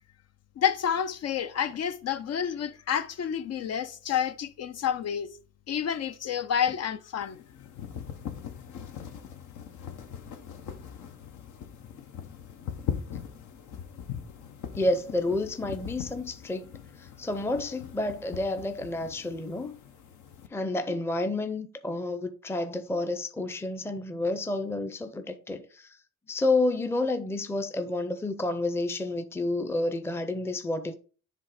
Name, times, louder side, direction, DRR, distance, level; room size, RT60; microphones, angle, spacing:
voice 1, 0.6-5.3 5.7-7.4, left 8 dB, 55° left, 0.5 m, -29 dB
sound 1, 7.2-20.5, left 8 dB, 75° left, 1.0 m, -41 dB
voice 2, 14.7-16.7 17.0-19.8 20.5-26.0 26.3-31.0, left 2 dB, 10° left, 0.6 m, -30 dB
7.5 x 3.2 x 4.8 m
cardioid pair, 90°, 30 cm